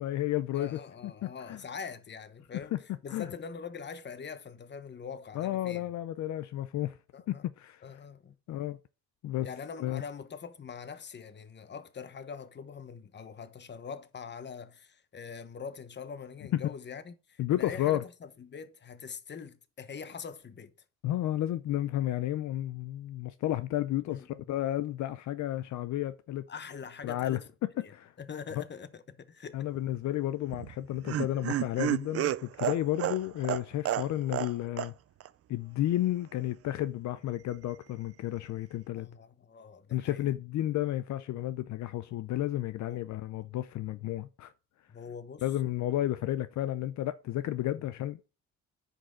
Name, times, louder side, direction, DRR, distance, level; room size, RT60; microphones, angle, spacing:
voice 1, 0.0-0.8 1.2-1.6 2.7-2.8 3.1-3.3 5.3-7.0 7.3-7.8 8.5-8.8 9.2-9.5 9.8-10.0 16.5-16.6 17.4-18.0 21.0-26.5 27.0-27.4 27.9-28.1 29.5-34.9 35.5-39.1 39.9-44.5 45.4-48.2, left 13 dB, 70° left, 0.5 m, -32 dB
voice 2, 0.5-2.7 3.0-5.8 7.1-7.5 7.8-8.4 9.4-20.7 24.1-24.4 26.5-27.5 27.8-29.6 39.0-40.2 42.9-43.0 44.9-45.5 47.6-47.8, left 6 dB, 35° left, 1.0 m, -43 dB
Laughter, 30.5-34.5 34.8-34.9 35.2-35.3, right 12 dB, 50° right, 0.5 m, -31 dB
10.0 x 5.4 x 3.8 m
cardioid pair, 90°, 30 cm